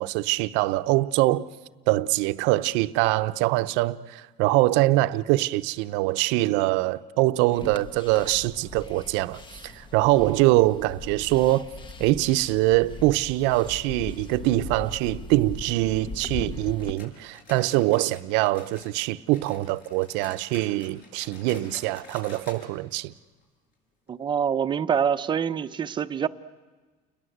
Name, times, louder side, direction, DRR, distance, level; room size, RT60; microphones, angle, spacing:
voice 1, 0.0-1.5 1.9-11.7 12.0-23.1, right 18 dB, 65° right, 0.8 m, -23 dB
sound 1, 7.5-16.9, left 3 dB, 25° left, 1.1 m, -40 dB
sound 2, 16.8-19.1 19.3-22.6 22.9-23.0 23.4-23.5 24.1-24.2, left 4 dB, 50° left, 7.4 m, -48 dB
voice 2, 24.1-26.3, right 7 dB, 25° right, 0.8 m, -25 dB
29.5 x 21.5 x 8.0 m
cardioid pair, 140°, 20 cm